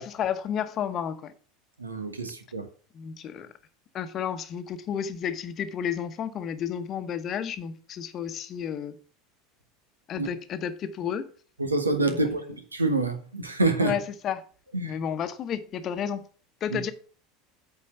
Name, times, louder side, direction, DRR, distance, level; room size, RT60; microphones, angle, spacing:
voice 1, 0.0-1.3 2.9-3.5 3.9-9.0 10.1-11.3 12.1-12.5 13.8-14.4 14.8-16.3 16.6-16.9, left 8 dB, 40° left, 1.0 m, -32 dB
voice 2, 1.8-2.6 10.2-10.3 11.6-12.4 12.7-13.9 14.7-14.9, right 2 dB, 85° right, 1.4 m, -26 dB
8.5 x 4.5 x 7.0 m
figure-of-eight pair, 75°, 0 cm